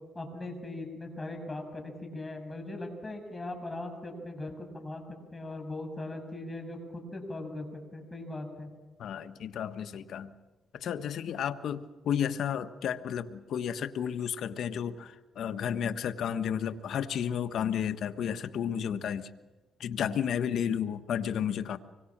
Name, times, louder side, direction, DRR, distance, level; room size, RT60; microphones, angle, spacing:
voice 1, 0.1-5.0 5.3-7.7 7.9-8.7, left 2 dB, 20° left, 4 dB, 7.3 m, -39 dB
voice 2, 9.0-10.3 10.7-19.3 19.8-21.8, left 8 dB, 70° left, 9 dB, 1.4 m, -32 dB
25.0 x 23.0 x 7.5 m, 1.2 s
cardioid pair, 90°, 0 cm